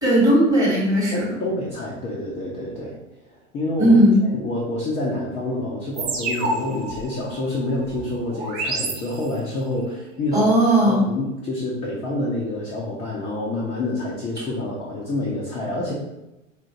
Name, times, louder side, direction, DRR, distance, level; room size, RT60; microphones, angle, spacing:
voice 1, 0.0-1.2 3.8-4.2 10.3-11.0, right 1 dB, 10° right, -6 dB, 1.3 m, -16 dB
voice 2, 1.1-3.0 3.5-10.5 10.9-15.9, left 2 dB, 15° left, -4 dB, 0.5 m, -27 dB
sound 1, 6.0-9.6, right 3 dB, 35° right, 0.8 m, -30 dB
4.2 x 2.4 x 2.8 m, 0.95 s
figure-of-eight pair, 100°, 38 cm